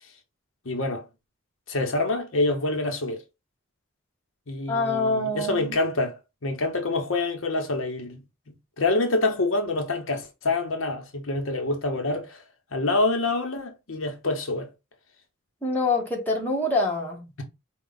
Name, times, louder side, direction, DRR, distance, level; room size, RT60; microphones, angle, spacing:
voice 1, 0.6-1.0 1.7-3.2 4.5-8.2 8.8-12.4 12.7-14.7, left 2 dB, 75° left, 1.0 m, -26 dB
voice 2, 4.7-5.7 15.6-17.3, left 2 dB, 10° left, 1.1 m, -25 dB
4.5 x 2.4 x 3.9 m
head